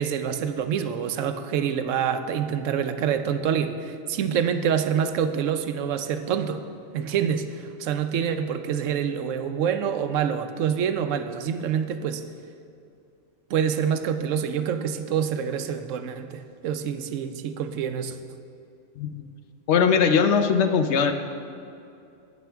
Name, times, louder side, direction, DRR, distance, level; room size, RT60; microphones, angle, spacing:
voice 1, 0.0-6.6 6.9-12.2 13.5-18.2, right 8 dB, 80° right, 9 dB, 0.9 m, -26 dB
voice 2, 19.7-21.1, left 6 dB, 70° left, 8 dB, 0.8 m, -20 dB
11.5 x 9.1 x 3.4 m, 2.6 s
omnidirectional pair, 1.3 m